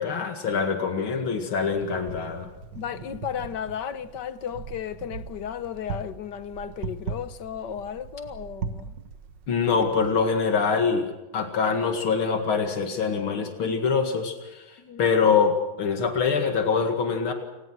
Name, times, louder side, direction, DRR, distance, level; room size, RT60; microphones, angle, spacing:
voice 1, 0.0-2.5 9.5-17.3, left 5 dB, 80° left, 2.8 m, -24 dB
Wind, 1.6-10.5, right 5 dB, 60° right, 1.8 m, -39 dB
voice 2, 2.7-8.9 14.8-15.0, left 8 dB, 60° left, 1.4 m, -34 dB
29.0 x 18.5 x 6.2 m
omnidirectional pair, 2.3 m